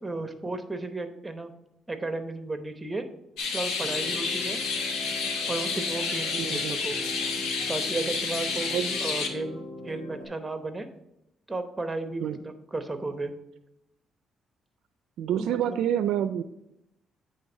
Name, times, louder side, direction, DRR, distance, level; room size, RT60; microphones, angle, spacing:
voice 1, 0.0-1.5 1.9-3.1 3.5-4.6 5.5-7.0 7.7-8.7 9.0-10.9 11.5-13.3 15.4-15.8, right 2 dB, 15° right, 8 dB, 0.9 m, -34 dB
sound 1, 3.4-9.3, left 4 dB, 90° left, 1.0 m, -30 dB
sound 2, 3.8-10.3, left 1 dB, 50° left, 2.5 m, -41 dB
voice 2, 6.4-6.8 8.7-9.0 12.2-12.4 15.2-16.4, right 10 dB, 80° right, 11 dB, 0.3 m, -27 dB
8.7 x 3.3 x 5.4 m, 0.86 s
cardioid pair, 90°, 0 cm